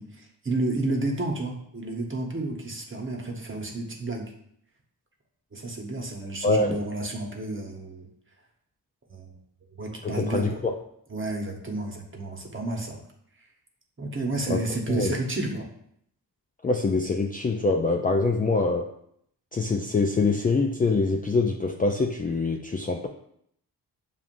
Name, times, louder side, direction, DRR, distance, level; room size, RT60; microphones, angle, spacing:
voice 1, 0.0-4.3 5.5-8.1 9.1-9.4 9.8-10.6 11.1-13.0 14.0-15.7, right 2 dB, 30° right, 1 dB, 1.0 m, -31 dB
voice 2, 6.4-6.8 10.0-10.7 14.5-14.6 14.9-15.1 16.6-18.9 19.5-23.1, left 3 dB, 20° left, 2 dB, 0.4 m, -24 dB
7.0 x 2.4 x 2.5 m, 0.70 s
cardioid pair, 55°, 43 cm